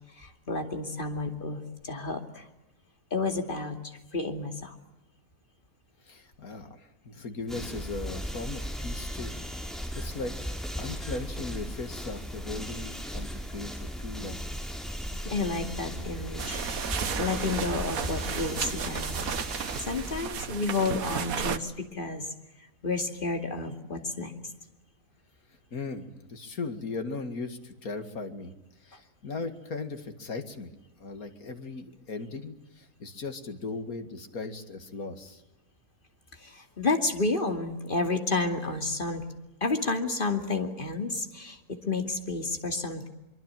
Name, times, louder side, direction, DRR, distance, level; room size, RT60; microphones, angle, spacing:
voice 1, 0.2-2.4 3.1-3.8 4.1-4.8 15.1-16.6 16.9-19.2 19.8-22.3 22.8-24.3 36.4-39.2 39.6-43.1, left 3 dB, 35° left, 5 dB, 2.7 m, -31 dB
voice 2, 6.0-9.3 9.7-10.5 10.8-14.4 25.7-28.5 28.8-30.7 31.0-35.4, left 3 dB, 70° left, 7 dB, 2.6 m, -38 dB
sound 1, 7.5-20.2, equal, ahead, 6.2 m, -37 dB
sound 2, 16.4-21.6, right 7 dB, 70° right, 1.6 m, -33 dB
24.5 x 23.5 x 9.1 m, 0.95 s
omnidirectional pair, 1.6 m